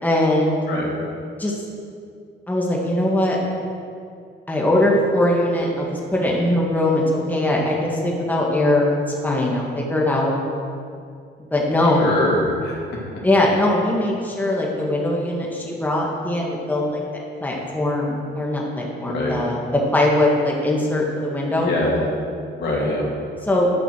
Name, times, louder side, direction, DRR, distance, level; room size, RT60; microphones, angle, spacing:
voice 1, 0.0-0.5 1.4-1.5 2.5-3.4 4.5-8.9 9.2-10.3 11.5-12.1 13.2-21.7 23.4-23.7, left 1 dB, 10° left, -3 dB, 1.8 m, -21 dB
voice 2, 12.0-12.8 19.1-19.4 21.6-22.0 22.5-23.0, left 2 dB, 60° left, -3 dB, 2.6 m, -23 dB
10.5 x 5.9 x 6.3 m, 2.4 s
cardioid pair, 90°, 20 cm